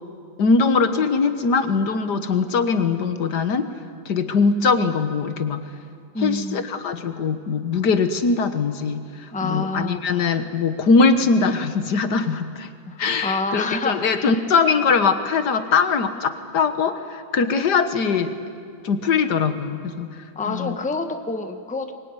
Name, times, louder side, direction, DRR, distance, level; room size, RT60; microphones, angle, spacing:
voice 1, 0.4-3.7 4.1-5.7 6.2-12.7 13.0-18.4 18.8-20.7, left 4 dB, 75° left, 9 dB, 1.9 m, -21 dB
voice 2, 6.1-6.6 9.3-10.0 12.8-14.4 20.3-21.9, left 3 dB, 5° left, 7 dB, 1.0 m, -28 dB
24.5 x 21.5 x 9.8 m, 2.2 s
omnidirectional pair, 1.8 m